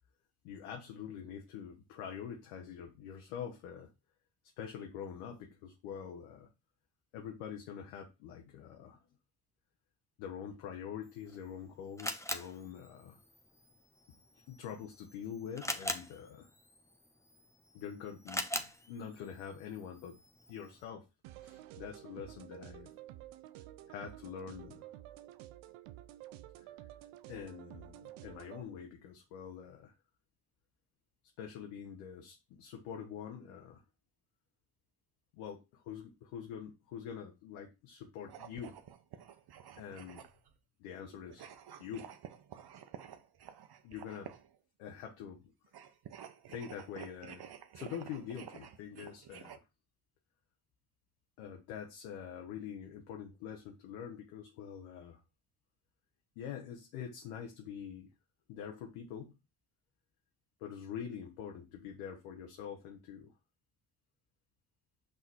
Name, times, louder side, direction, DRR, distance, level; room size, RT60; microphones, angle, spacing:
voice 1, 0.4-3.9 4.6-6.5 7.1-9.0 10.2-13.2 14.5-16.5 17.7-20.2 20.5-21.0 21.4-22.9 23.9-24.8 26.6-26.7 27.3-29.9 31.4-33.8 35.3-38.8 39.8-40.2 40.8-41.5 41.8-42.1 43.8-44.3 44.8-45.5 46.5-47.4 47.7-49.6 51.4-55.2 56.4-58.1 58.5-59.4 60.6-63.3, left 8 dB, 85° left, 3 dB, 1.1 m, -45 dB
Camera, 11.0-20.9, left 1 dB, 5° left, 1.0 m, -44 dB
sound 1, 21.2-28.6, right 14 dB, 80° right, 0.7 m, -51 dB
sound 2, 38.2-40.6 41.3-44.6 45.6-49.6, right 9 dB, 50° right, 1.0 m, -51 dB
5.7 x 3.9 x 4.5 m, 0.27 s
hypercardioid pair, 50°, 48 cm